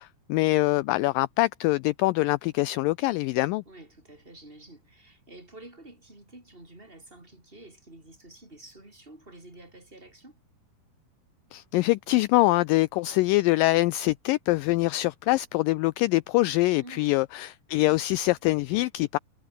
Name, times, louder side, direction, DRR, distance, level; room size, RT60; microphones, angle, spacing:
voice 1, 0.0-3.6 11.5-19.2, left 19 dB, 90° left, 1.9 m, -24 dB
voice 2, 3.7-10.4 16.8-17.2, right 2 dB, 15° right, 7.3 m, -49 dB
omnidirectional pair, 4.5 m